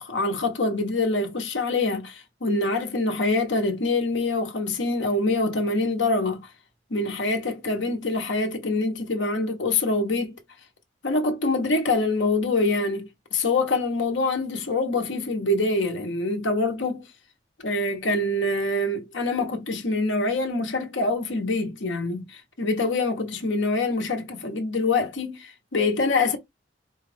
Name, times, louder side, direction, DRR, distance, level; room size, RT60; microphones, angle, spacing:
voice 1, 0.0-6.5 6.9-10.4 11.0-17.1 17.6-26.4, left 2 dB, 75° left, 1.0 m, -25 dB
4.5 x 2.4 x 3.4 m
head